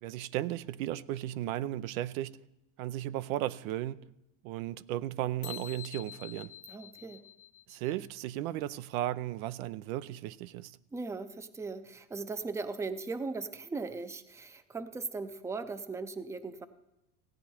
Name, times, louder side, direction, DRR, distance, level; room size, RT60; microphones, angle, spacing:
voice 1, 0.0-2.4 2.8-4.0 4.4-6.5 7.7-10.8, right 14 dB, 75° right, 0.6 m, -35 dB
sound 1, 5.4-8.1, left 12 dB, 80° left, 1.2 m, -47 dB
voice 2, 6.7-7.2 10.9-16.7, right 4 dB, 5° right, 0.6 m, -38 dB
16.5 x 9.5 x 4.4 m
supercardioid pair, 110°, 41 cm